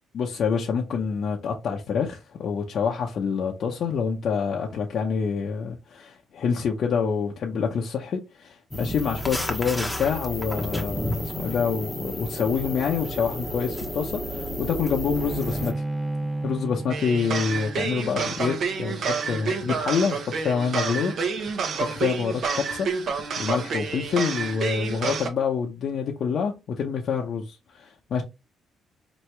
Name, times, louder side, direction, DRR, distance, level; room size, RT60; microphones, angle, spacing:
voice 1, 0.1-15.8 16.4-22.9 23.4-28.2, left 6 dB, 65° left, 0.7 m, -27 dB
sound 1, 8.7-15.7, equal, 5° left, 1.0 m, -32 dB
Bowed string instrument, 15.2-20.5, right 2 dB, 10° right, 0.5 m, -34 dB
sound 2, 16.9-25.3, right 5 dB, 60° right, 0.9 m, -29 dB
4.5 x 3.0 x 3.2 m
cardioid pair, 90°, 0 cm